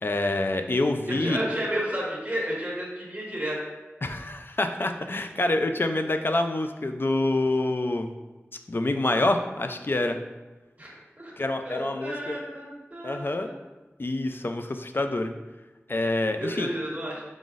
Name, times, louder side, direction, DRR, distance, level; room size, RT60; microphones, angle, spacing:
voice 1, 0.0-1.4 4.0-8.1 8.7-10.2 11.4-12.4 13.0-13.5 14.0-15.3 15.9-16.7, left 2 dB, 50° left, 6 dB, 0.4 m, -26 dB
voice 2, 1.1-3.6 10.8-11.3 11.6-13.6 16.3-17.2, right 1 dB, 30° right, -5 dB, 1.4 m, -32 dB
4.8 x 3.9 x 2.5 m, 1.2 s
wide cardioid pair, 50°, 5 cm